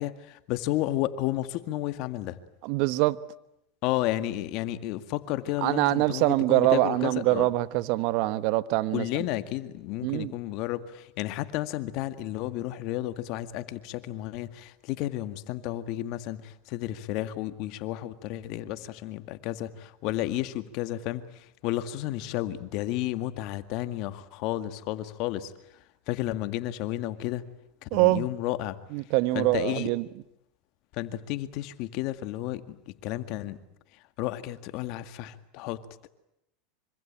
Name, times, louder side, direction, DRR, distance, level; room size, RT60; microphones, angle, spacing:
voice 1, 0.0-2.4 3.8-7.5 8.9-25.5 26.1-27.5 27.8-28.8 29.3-29.9 31.0-33.6 34.2-36.1, left 15 dB, 55° left, 2.0 m, -32 dB
voice 2, 2.6-3.2 5.6-9.2 10.0-10.3 27.9-28.3 28.9-30.0, right 18 dB, 60° right, 1.2 m, -24 dB
26.0 x 25.5 x 8.9 m
hypercardioid pair, 100°, 0 cm